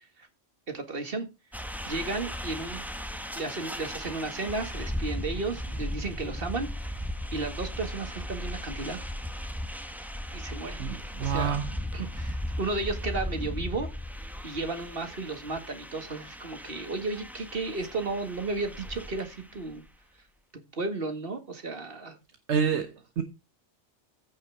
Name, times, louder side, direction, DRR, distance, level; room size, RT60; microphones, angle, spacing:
voice 1, 0.7-1.3 1.9-2.8 3.3-6.7 7.3-9.1 10.3-10.8 11.2-11.6 11.9-13.9 14.4-19.8 20.7-22.2 22.7-22.8, right 3 dB, 50° right, 2.1 m, -33 dB
sound 1, 1.5-19.9, equal, ahead, 1.2 m, -37 dB
voice 2, 10.8-11.7 22.5-23.2, right 7 dB, 65° right, 1.3 m, -28 dB
15.0 x 5.8 x 4.8 m
omnidirectional pair, 1.2 m